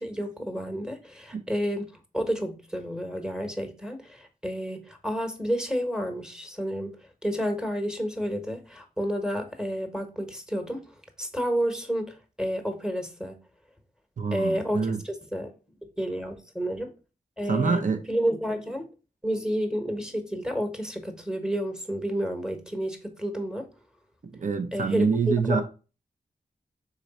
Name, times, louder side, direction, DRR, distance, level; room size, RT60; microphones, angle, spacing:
voice 1, 0.0-7.0 7.2-10.8 11.2-13.4 14.3-15.5 16.0-16.9 17.4-18.9 19.2-23.7 24.7-25.6, equal, 5° right, 1.1 m, -30 dB
voice 2, 14.2-15.0 17.5-18.0 24.4-25.6, right 5 dB, 55° right, 0.8 m, -25 dB
4.0 x 3.1 x 4.1 m
cardioid pair, 50°, 16 cm